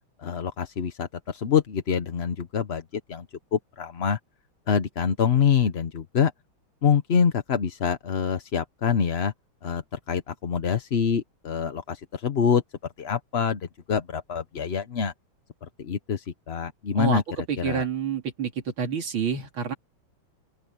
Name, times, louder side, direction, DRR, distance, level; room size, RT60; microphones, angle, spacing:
voice 1, 0.2-3.2 3.5-4.2 4.7-6.3 6.8-9.3 9.6-12.6 13.0-15.1 15.6-17.2 17.6-17.8, left 7 dB, 45° left, 0.8 m, -25 dB
voice 2, 16.9-19.7, right 6 dB, 90° right, 3.3 m, -28 dB
open air
omnidirectional pair, 2.2 m